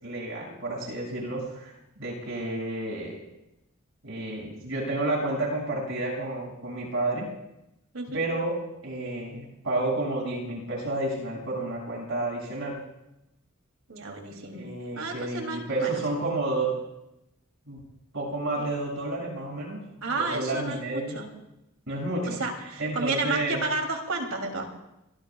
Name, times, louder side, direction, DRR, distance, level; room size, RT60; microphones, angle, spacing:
voice 1, 0.0-1.7 2.0-3.2 4.0-7.3 8.1-8.6 8.8-12.8 14.5-16.8 17.7-17.8 18.1-21.2 21.9-22.4 22.8-23.6, right 2 dB, 70° right, -3 dB, 6.6 m, -30 dB
voice 2, 13.9-14.7 14.9-16.0 18.6-18.7 20.0-21.3 22.3-24.7, right 3 dB, 85° right, 2 dB, 3.0 m, -31 dB
24.0 x 23.0 x 2.4 m, 0.89 s
head